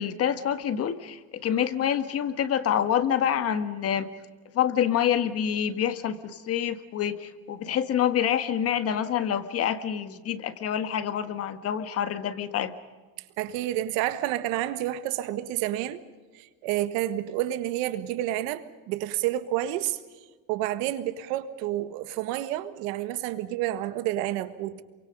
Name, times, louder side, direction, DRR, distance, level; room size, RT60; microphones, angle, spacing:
voice 1, 0.0-4.1 4.5-12.7, left 9 dB, 40° left, 1.5 m, -27 dB
voice 2, 13.4-16.0 16.3-20.0 20.5-24.8, right 13 dB, 75° right, 1.6 m, -29 dB
28.0 x 24.0 x 5.4 m
cardioid pair, 145°, 38 cm